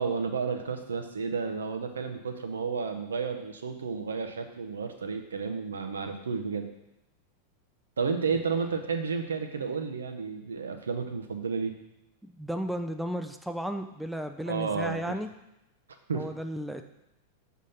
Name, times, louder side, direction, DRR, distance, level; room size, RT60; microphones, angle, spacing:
voice 1, 0.0-6.7 8.0-11.7 14.5-15.2 16.1-16.3, right 5 dB, 70° right, 6 dB, 0.6 m, -32 dB
voice 2, 12.2-15.3 16.1-16.8, equal, ahead, 7 dB, 0.4 m, -34 dB
6.2 x 3.7 x 5.6 m, 0.88 s
figure-of-eight pair, 90°, 0 cm